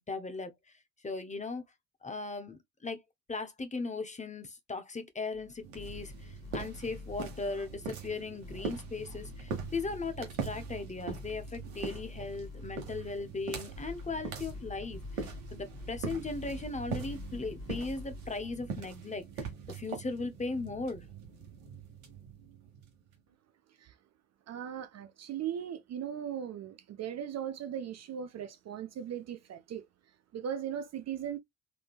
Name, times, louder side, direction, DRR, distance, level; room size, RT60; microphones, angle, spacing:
voice 1, 0.1-0.5 1.0-1.6 2.0-3.0 3.3-21.1, left 3 dB, 15° left, 0.8 m, -38 dB
sound 1, 5.3-19.0, left 3 dB, 35° left, 1.6 m, -47 dB
sound 2, 5.6-23.2, right 5 dB, 80° right, 1.2 m, -42 dB
voice 2, 24.5-29.9 30.3-31.4, right 9 dB, 40° right, 0.5 m, -38 dB
3.6 x 2.7 x 2.4 m
hypercardioid pair, 50°, 43 cm